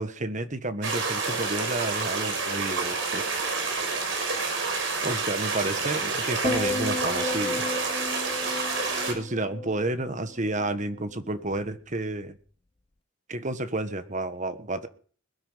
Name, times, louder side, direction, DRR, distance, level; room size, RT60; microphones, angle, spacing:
voice 1, 0.0-3.2 5.0-7.7 9.1-12.4 13.3-14.9, right 2 dB, 40° right, 11 dB, 1.5 m, -31 dB
sound 1, 0.8-9.1, right 4 dB, 65° right, 5.2 m, -29 dB
sound 2, 6.4-10.8 11.1-11.5, left 3 dB, 25° left, 0.6 m, -34 dB
21.5 x 10.0 x 5.7 m, 0.44 s
head